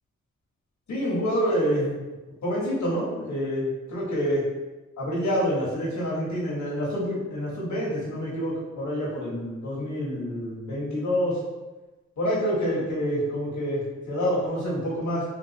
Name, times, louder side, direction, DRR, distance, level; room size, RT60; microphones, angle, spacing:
voice 1, 0.9-2.0 2.4-4.4 5.0-11.4 12.2-15.2, equal, 75° left, -6 dB, 1.1 m, -27 dB
3.8 x 2.4 x 2.7 m, 1.1 s
wide cardioid pair, 90°, 29 cm